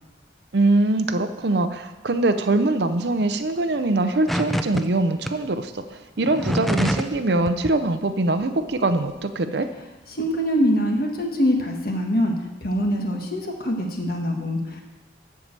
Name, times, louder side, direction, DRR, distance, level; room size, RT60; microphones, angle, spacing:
voice 1, 0.5-9.7, right 2 dB, 60° right, 9 dB, 0.6 m, -22 dB
sound 1, 4.3-4.8 5.2-5.3 6.2-7.2 7.5-7.7, equal, ahead, 0.4 m, -25 dB
voice 2, 10.1-12.3 12.6-14.8, equal, 50° left, 2 dB, 1.5 m, -23 dB
12.5 x 4.8 x 7.4 m, 1.1 s
head